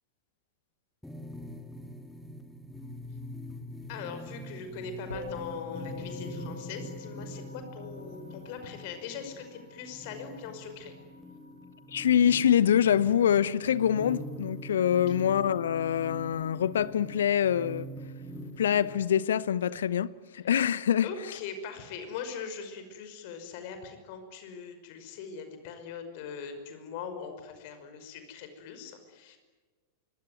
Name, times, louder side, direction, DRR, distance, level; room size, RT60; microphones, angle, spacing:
sound 1, 1.0-19.0, equal, 5° left, 2.5 m, -44 dB
voice 1, 3.9-11.0 21.0-29.4, left 6 dB, 50° left, 5.5 m, -41 dB
Musical instrument, 5.1-14.6, left 4 dB, 85° left, 4.2 m, -47 dB
voice 2, 11.9-17.9 18.6-21.1, left 9 dB, 65° left, 1.0 m, -25 dB
25.5 x 22.5 x 9.5 m
figure-of-eight pair, 90°, 0 cm